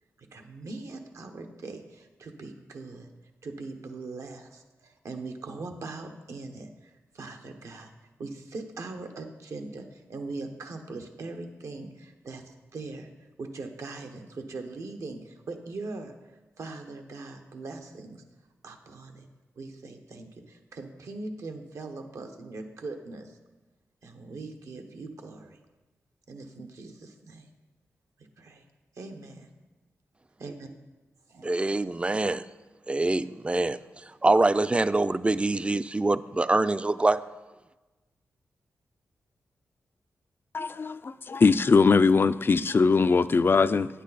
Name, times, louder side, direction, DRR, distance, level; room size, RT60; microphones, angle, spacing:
voice 1, 0.2-3.1 3.4-7.9 8.2-13.1 13.4-16.2 16.6-18.2 18.6-19.3 19.6-23.4 24.0-25.6 26.3-27.5 28.2-28.6 28.9-29.5 30.4-30.7 31.3-31.5, right 3 dB, 75° right, 1.1 m, -41 dB
voice 2, 31.4-32.4 32.9-33.8 34.2-37.2, right 2 dB, 20° right, 0.4 m, -24 dB
voice 3, 40.5-43.9, left 4 dB, 45° left, 0.4 m, -21 dB
9.7 x 8.4 x 4.1 m
cardioid pair, 55°, 5 cm